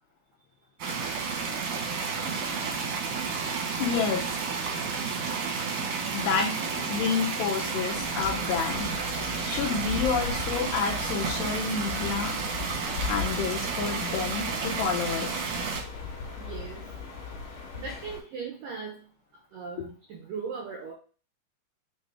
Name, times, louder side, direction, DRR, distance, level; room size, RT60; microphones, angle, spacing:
sound 1, 0.8-15.8, right 5 dB, 65° right, 1.9 m, -31 dB
voice 1, 3.8-4.3 6.1-8.9 9.5-12.4 13.0-15.5, left 6 dB, 75° left, 1 dB, 2.6 m, -29 dB
sound 2, 7.9-18.2, left 5 dB, 50° left, 3.4 m, -38 dB
voice 2, 16.4-16.8 17.7-19.0 19.5-20.9, right 5 dB, 80° right, 0 dB, 1.9 m, -38 dB
7.5 x 3.1 x 4.7 m, 0.39 s
omnidirectional pair, 5.6 m